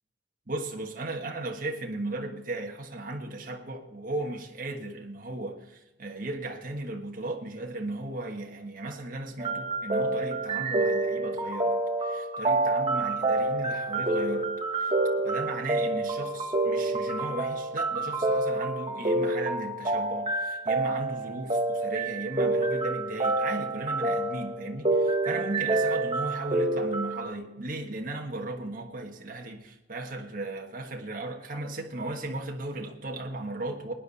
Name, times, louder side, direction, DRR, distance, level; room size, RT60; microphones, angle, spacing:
voice 1, 0.5-14.9 15.2-33.9, right 2 dB, 50° right, 2 dB, 1.4 m, -36 dB
sound 1, 9.4-27.3, right 2 dB, 30° right, 1.3 m, -28 dB
19.0 x 10.5 x 4.1 m, 0.96 s
head